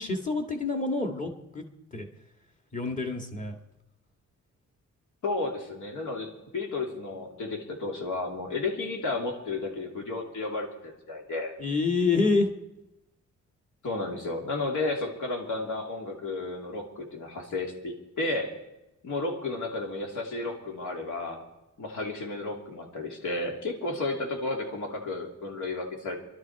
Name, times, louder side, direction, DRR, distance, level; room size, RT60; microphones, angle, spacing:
voice 1, 0.0-1.6 1.9-2.1 2.7-3.6 11.6-12.5, left 3 dB, 25° left, 3 dB, 1.8 m, -27 dB
voice 2, 5.2-11.5 13.8-18.5 19.0-21.4 21.8-26.2, left 2 dB, 75° left, 1 dB, 3.0 m, -32 dB
25.0 x 12.0 x 4.7 m, 0.95 s
wide cardioid pair, 170°, 30 cm